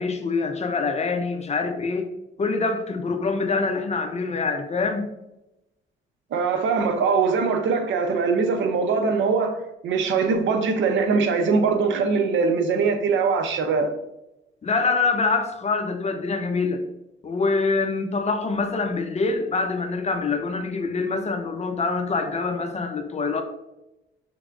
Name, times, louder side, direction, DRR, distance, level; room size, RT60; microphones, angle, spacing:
voice 1, 0.0-2.1 2.4-5.1 14.6-16.8 17.2-23.4, left 4 dB, 35° left, 6 dB, 0.6 m, -25 dB
voice 2, 6.3-13.9, right 5 dB, 70° right, 6 dB, 0.7 m, -22 dB
6.0 x 3.3 x 2.5 m, 0.93 s
cardioid pair, 90°, 20 cm